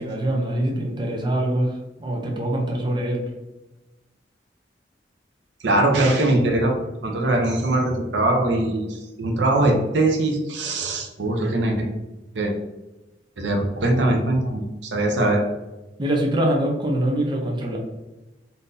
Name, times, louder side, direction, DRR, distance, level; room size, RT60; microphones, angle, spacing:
voice 1, 0.0-3.2 16.0-17.8, right 1 dB, 25° right, 0 dB, 0.5 m, -24 dB
voice 2, 5.6-11.9 12.3-12.5 13.4-15.5, right 2 dB, 80° right, 2 dB, 0.6 m, -21 dB
3.7 x 2.6 x 2.6 m, 1.1 s
head